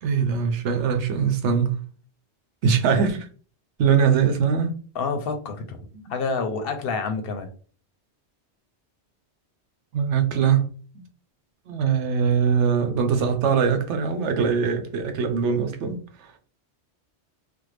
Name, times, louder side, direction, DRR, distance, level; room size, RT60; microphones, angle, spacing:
voice 1, 0.0-1.8 2.6-3.3 3.8-4.8 9.9-10.7 10.9-11.0 11.7-16.3, right 6 dB, 85° right, 0.9 m, -22 dB
voice 2, 4.9-7.5, left 4 dB, 65° left, 0.7 m, -28 dB
3.4 x 2.0 x 3.1 m
omnidirectional pair, 1.2 m